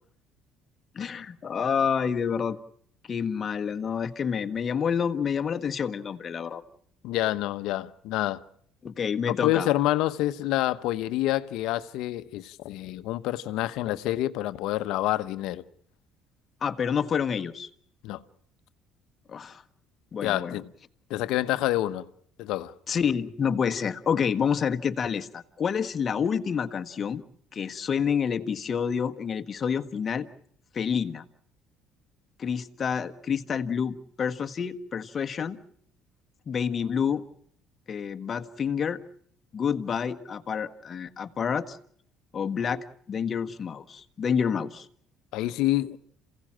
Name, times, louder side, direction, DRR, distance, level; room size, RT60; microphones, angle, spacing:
voice 1, 0.9-2.6 3.1-6.6 8.8-9.7 16.6-17.7 19.3-19.6 20.1-20.6 22.9-27.2 27.5-30.3 30.7-31.2 32.4-35.6 36.5-37.3 37.9-39.0 39.5-41.8 42.3-44.9, left 7 dB, 40° left, 1.5 m, -28 dB
voice 2, 7.0-8.4 9.3-15.6 18.0-18.2 20.2-20.7 21.1-22.1 22.4-22.7 45.3-46.0, left 15 dB, 75° left, 1.0 m, -27 dB
28.0 x 17.0 x 7.5 m
supercardioid pair, 85°, 0 cm